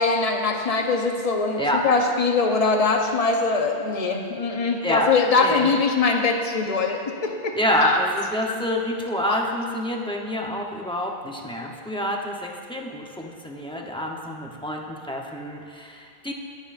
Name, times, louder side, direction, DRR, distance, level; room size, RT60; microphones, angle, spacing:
voice 1, 0.0-8.0 9.2-9.4, left 4 dB, 35° left, 3 dB, 0.9 m, -22 dB
voice 2, 5.4-5.7 7.5-16.3, equal, 5° left, -1 dB, 0.8 m, -27 dB
18.5 x 9.2 x 2.6 m, 2.3 s
omnidirectional pair, 1.1 m